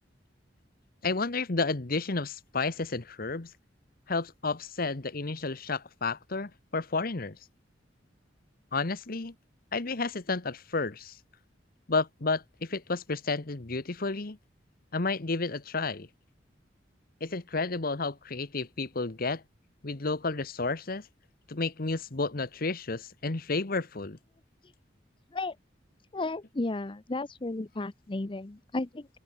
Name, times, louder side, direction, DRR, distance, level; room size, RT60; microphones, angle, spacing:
voice 1, 1.0-3.5 4.1-7.4 8.7-9.3 9.7-11.2 11.9-14.4 14.9-16.1 17.2-19.4 19.8-21.1 21.5-24.2, left 3 dB, 50° left, 1.2 m, -31 dB
voice 2, 26.1-29.1, left 2 dB, 25° left, 0.6 m, -34 dB
open air
head